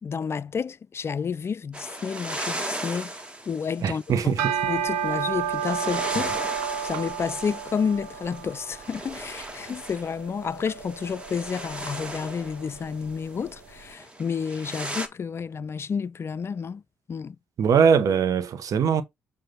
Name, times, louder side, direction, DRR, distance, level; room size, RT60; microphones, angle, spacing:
voice 1, 0.0-3.1 3.5-6.3 6.8-16.8 17.1-17.4, left 6 dB, 40° left, 0.4 m, -30 dB
sound 1, 1.7-15.1, right 1 dB, 15° right, 1.7 m, -37 dB
voice 2, 3.8-4.7 17.6-19.0, right 6 dB, 60° right, 1.1 m, -22 dB
sound 2, 4.2-13.6, right 8 dB, 85° right, 1.0 m, -32 dB
7.6 x 2.6 x 5.7 m
hypercardioid pair, 50°, 7 cm